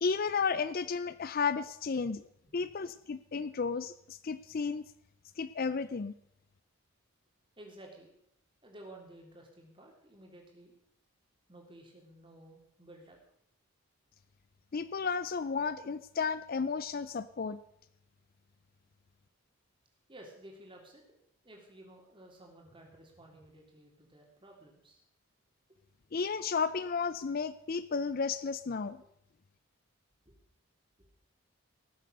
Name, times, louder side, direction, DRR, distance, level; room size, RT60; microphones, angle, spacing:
voice 1, 0.0-2.2 2.5-4.8 5.4-6.1 14.7-17.6 26.1-29.0, left 5 dB, 40° left, 15 dB, 0.4 m, -33 dB
voice 2, 7.6-8.1 8.6-10.7 11.5-13.2 20.1-21.0 21.4-25.0 25.7-25.8 29.0-29.1 30.2-30.4 31.0-31.1, right 1 dB, 25° right, 0 dB, 3.2 m, -54 dB
18.5 x 7.7 x 6.6 m, 0.74 s
head